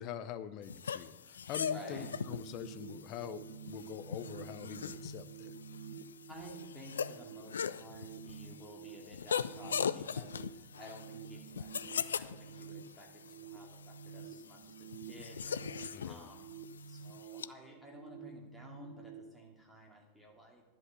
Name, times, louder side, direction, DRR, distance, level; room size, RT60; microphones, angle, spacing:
voice 1, 0.0-5.5 15.9-16.3, left 10 dB, 40° left, 12 dB, 0.6 m, -44 dB
sound 1, 0.7-17.5, left 7 dB, 70° left, 0.3 m, -41 dB
voice 2, 1.7-2.1 6.3-20.6, equal, 5° left, -1 dB, 2.5 m, -54 dB
HV-pacing-down en out, 1.9-19.2, right 7 dB, 65° right, 0.7 m, -50 dB
11.0 x 7.7 x 5.8 m, 1.1 s
figure-of-eight pair, 90°, 0 cm